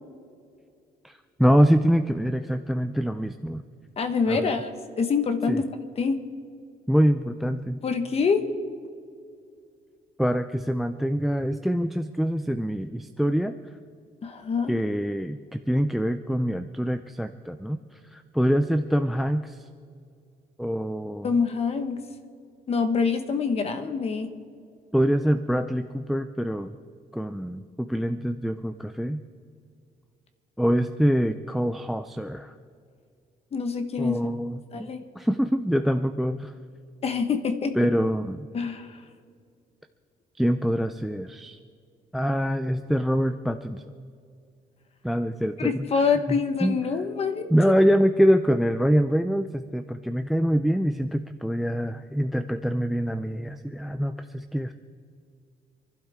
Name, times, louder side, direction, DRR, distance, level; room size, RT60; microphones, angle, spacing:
voice 1, 1.4-3.6 4.3-4.5 5.5-5.6 6.9-7.8 10.2-13.5 14.7-17.8 18.1-19.6 20.6-21.3 24.9-26.7 27.1-29.2 30.6-32.5 34.0-34.9 35.2-36.5 37.8-38.5 40.4-41.6 42.1-43.8 45.0-45.9 46.3-46.8 47.5-54.7, equal, ahead, 10 dB, 0.4 m, -25 dB
voice 2, 4.0-5.6 6.0-6.2 7.8-8.4 14.2-14.7 21.2-22.0 22.7-24.3 33.5-34.3 34.7-35.0 37.0-37.7 38.5-39.0 45.6-47.5, left 5 dB, 40° left, 8 dB, 1.3 m, -25 dB
27.0 x 12.0 x 3.6 m, 2.3 s
cardioid pair, 135°, 16 cm